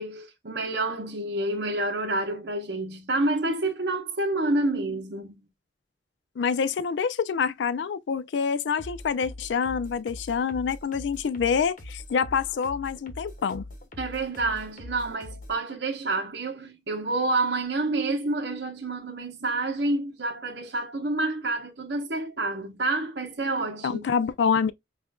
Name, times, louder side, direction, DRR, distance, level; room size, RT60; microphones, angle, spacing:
voice 1, 0.0-5.5 14.0-24.1, right 2 dB, 65° right, 1.0 m, -28 dB
voice 2, 6.4-13.7 23.8-24.7, left 6 dB, 80° left, 0.4 m, -26 dB
sound 1, 8.8-15.6, left 1 dB, 45° left, 1.0 m, -42 dB
5.6 x 2.5 x 2.2 m
head